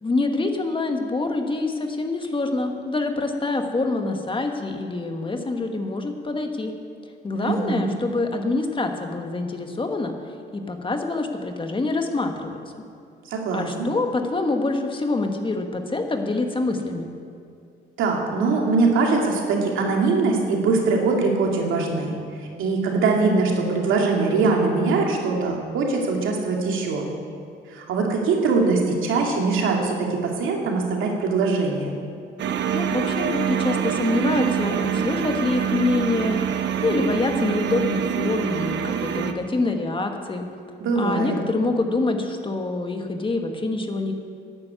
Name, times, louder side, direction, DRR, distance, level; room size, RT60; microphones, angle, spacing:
voice 1, 0.0-6.7 7.2-10.1 10.5-12.7 13.5-17.1 32.7-40.5 41.0-44.1, left 3 dB, 25° left, 4 dB, 1.5 m, -26 dB
voice 2, 7.4-7.9 13.3-13.9 18.0-27.0 27.7-31.9 40.8-41.4, right 3 dB, 85° right, 0 dB, 2.5 m, -22 dB
sound 1, 32.4-39.3, right 8 dB, 65° right, 1.0 m, -25 dB
11.5 x 9.4 x 8.3 m, 2.5 s
cardioid pair, 90°, 20 cm